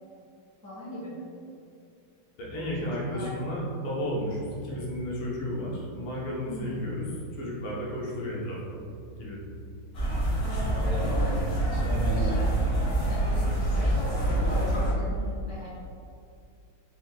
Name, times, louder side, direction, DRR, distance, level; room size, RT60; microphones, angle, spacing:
voice 1, 0.6-1.2 2.8-3.3 6.5-6.9 11.0-11.4 12.1-12.5 13.1-14.0 14.5-15.7, equal, 10° right, -10 dB, 0.7 m, -40 dB
voice 2, 2.4-7.1 7.3-8.8 9.2-9.4, equal, 85° left, -5 dB, 1.9 m, -33 dB
sound 1, 9.9-14.9, right 1 dB, 45° left, 0.9 m, -26 dB
5.1 x 2.7 x 3.8 m, 2.4 s
omnidirectional pair, 2.3 m